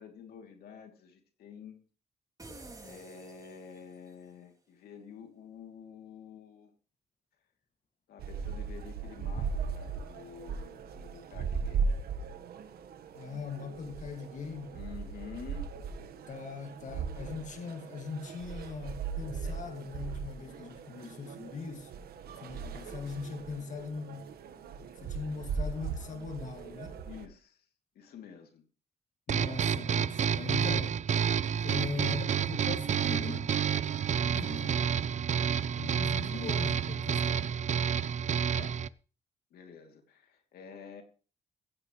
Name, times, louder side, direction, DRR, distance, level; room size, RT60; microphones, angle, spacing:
voice 1, 0.0-1.8 2.8-6.7 8.1-12.0 14.7-15.7 27.0-27.6 27.9-28.6 38.5-38.8 39.5-41.0, left 6 dB, 85° left, 2.8 m, -49 dB
sound 1, 2.4-4.2, right 2 dB, 20° right, 2.8 m, -50 dB
sound 2, 8.2-27.3, right 5 dB, 85° right, 1.4 m, -38 dB
voice 2, 13.1-14.8 16.3-21.9 22.3-24.3 25.0-26.9 29.3-31.1 31.6-33.6 34.1-34.9 35.8-37.5, left 5 dB, 50° left, 2.1 m, -40 dB
sound 3, 29.3-38.9, right 8 dB, 50° right, 0.6 m, -29 dB
15.5 x 15.5 x 3.2 m
cardioid pair, 90°, 16 cm